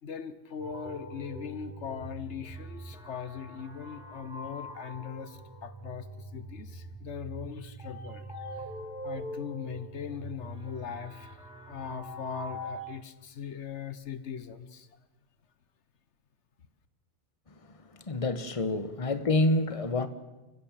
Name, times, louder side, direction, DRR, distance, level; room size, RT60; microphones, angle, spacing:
voice 1, 0.0-8.7 9.0-14.9, left 7 dB, 85° left, 1.4 m, -40 dB
sound 1, 0.6-12.8, right 1 dB, 5° right, 3.8 m, -43 dB
voice 2, 17.9-20.1, left 2 dB, 30° left, 1.3 m, -27 dB
29.5 x 15.5 x 7.5 m
omnidirectional pair, 1.2 m